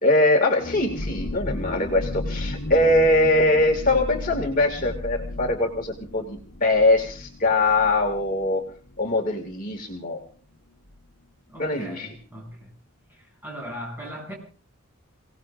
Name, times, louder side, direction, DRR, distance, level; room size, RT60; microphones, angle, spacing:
voice 1, 0.0-8.6 9.0-10.2 11.6-12.1, left 2 dB, 40° left, 1 dB, 2.1 m, -22 dB
sound 1, 0.6-10.0 10.3-10.4 10.7-11.0, left 2 dB, 75° left, 1.2 m, -35 dB
voice 2, 11.5-12.7 13.1-14.3, equal, 10° right, -2 dB, 7.3 m, -39 dB
29.0 x 18.0 x 2.5 m, 0.40 s
head